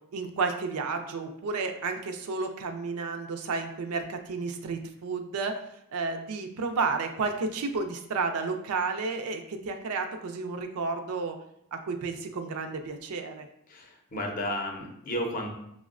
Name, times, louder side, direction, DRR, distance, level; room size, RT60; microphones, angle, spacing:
voice 1, 0.1-5.6 5.9-11.4 11.7-13.5, right 4 dB, 85° right, 6 dB, 0.4 m, -31 dB
voice 2, 13.7-15.5, left 1 dB, 40° left, 2 dB, 0.6 m, -33 dB
5.9 x 2.1 x 2.4 m, 0.76 s
head